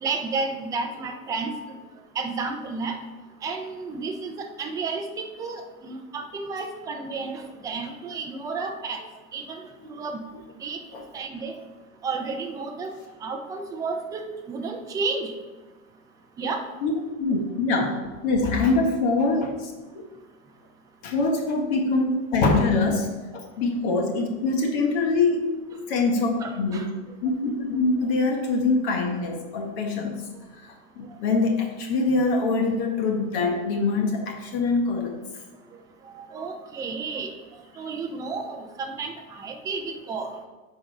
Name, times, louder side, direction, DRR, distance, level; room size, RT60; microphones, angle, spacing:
voice 1, 0.0-1.5 2.2-3.0 3.4-9.0 9.3-9.7 10.0-10.2 10.6-10.8 11.1-11.5 12.0-12.9 13.2-15.3 16.4-16.6 26.4-26.9 36.2-37.3 37.8-40.5, right 4 dB, 10° right, 4 dB, 0.3 m, -31 dB
voice 2, 17.2-17.9 18.2-19.7 21.0-25.4 25.9-26.9 27.2-30.2 30.6-35.2, left 3 dB, 50° left, 2 dB, 1.3 m, -24 dB
8.6 x 4.0 x 5.3 m, 1.2 s
supercardioid pair, 140°, 40 cm